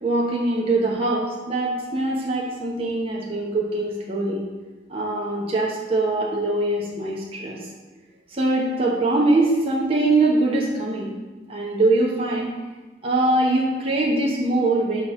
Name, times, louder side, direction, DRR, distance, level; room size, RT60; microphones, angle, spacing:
voice 1, 0.0-4.4 4.9-7.7 8.3-11.1 11.5-12.5 13.0-15.0, right 2 dB, 30° right, -4 dB, 0.8 m, -22 dB
6.0 x 3.0 x 5.6 m, 1.2 s
head